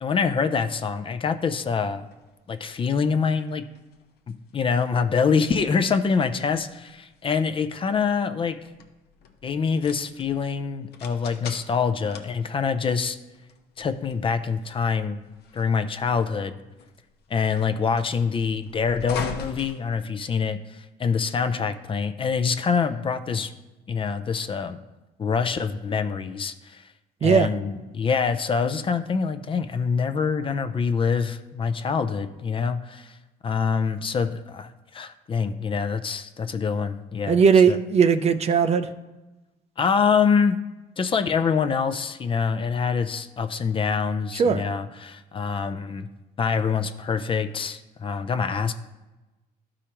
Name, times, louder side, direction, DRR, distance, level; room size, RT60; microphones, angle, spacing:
voice 1, 0.0-2.1 2.5-3.6 4.5-8.6 9.4-13.2 13.8-15.2 15.5-16.6 17.3-23.5 23.9-24.8 25.2-26.8 27.2-33.1 33.4-37.4 37.7-37.8 39.8-40.6 41.0-46.1 46.4-48.7, left 5 dB, 30° left, 9 dB, 0.5 m, -25 dB
sound 1, 1.4-20.6, left 5 dB, 70° left, 0.8 m, -43 dB
voice 2, 37.3-38.9 44.3-44.6, right 6 dB, 40° right, 9 dB, 0.4 m, -18 dB
12.0 x 4.9 x 2.9 m, 1.1 s
cardioid pair, 110°, 17 cm